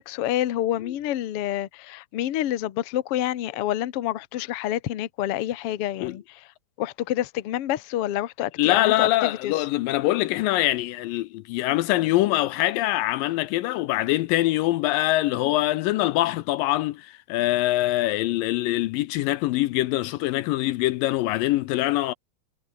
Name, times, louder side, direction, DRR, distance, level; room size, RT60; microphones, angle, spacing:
voice 1, 0.0-6.2 6.8-9.5, left 13 dB, 60° left, 1.5 m, -28 dB
voice 2, 8.6-22.1, left 16 dB, 80° left, 2.2 m, -24 dB
omnidirectional pair, 4.3 m